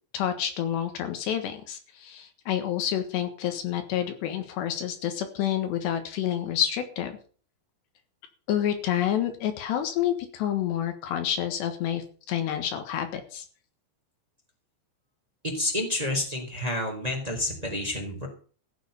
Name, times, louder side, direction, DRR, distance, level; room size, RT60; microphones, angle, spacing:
voice 1, 0.1-7.2 8.5-13.5, left 10 dB, 75° left, 7 dB, 3.6 m, -28 dB
voice 2, 15.4-18.3, left 1 dB, 10° right, 1 dB, 3.1 m, -29 dB
15.0 x 7.6 x 6.9 m, 0.42 s
omnidirectional pair, 5.2 m